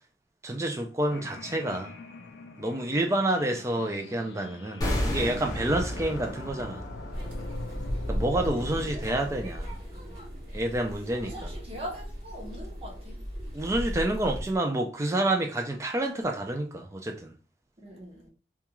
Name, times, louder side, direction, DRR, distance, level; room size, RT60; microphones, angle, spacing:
voice 1, 0.4-1.9 2.6-6.8 8.1-9.7 10.5-11.5 13.5-17.3, right 1 dB, 15° right, 0.3 m, -28 dB
sound 1, 1.1-9.0, left 3 dB, 70° left, 0.4 m, -43 dB
sound 2, 4.8-9.8 10.1-10.2, left 1 dB, 20° left, 0.6 m, -34 dB
sound 3, 7.1-14.6, equal, 50° right, 1.1 m, -36 dB
voice 2, 7.6-9.2 9.9-10.2 11.2-13.2 17.8-18.3, equal, 30° right, 0.7 m, -43 dB
2.3 x 2.2 x 2.9 m
head